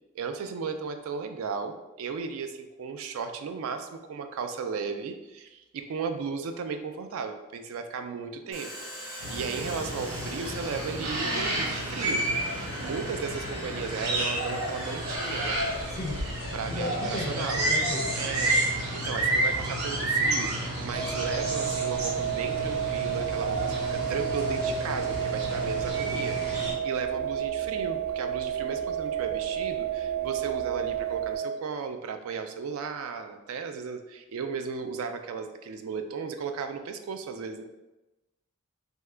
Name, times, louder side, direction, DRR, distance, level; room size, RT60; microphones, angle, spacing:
voice 1, 0.1-8.7 9.0-15.6 16.5-17.7 18.2-18.6 18.9-37.6, right 5 dB, 70° right, 7 dB, 0.3 m, -35 dB
Domestic sounds home sounds, 8.5-19.9, equal, 15° right, 0.7 m, -42 dB
sound 1, 9.2-26.7, right 1 dB, 85° right, 0.8 m, -30 dB
voice 2, 15.9-16.3 16.7-18.3, left 2 dB, 30° left, 3 dB, 0.4 m, -35 dB
sound 2, 20.9-31.4, right 9 dB, 45° right, 0.7 m, -31 dB
2.7 x 2.3 x 3.2 m, 1.0 s
head